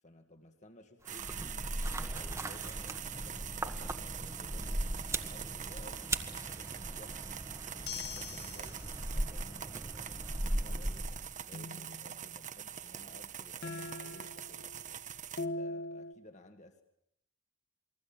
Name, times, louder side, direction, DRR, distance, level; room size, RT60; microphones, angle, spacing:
voice 1, 0.0-4.8 5.2-7.3 7.7-8.8 9.1-11.1 11.4-14.8 15.4-16.8, left 1 dB, 35° left, 6 dB, 2.0 m, -56 dB
sound 1, 1.0-11.4, right 1 dB, 15° right, 1.6 m, -38 dB
sound 2, 1.1-15.5, right 9 dB, 40° right, 1.2 m, -44 dB
sound 3, 7.9-8.9 11.5-12.4 13.6-14.9 15.4-16.1, left 3 dB, 55° left, 1.6 m, -42 dB
28.5 x 21.5 x 8.9 m, 0.76 s
head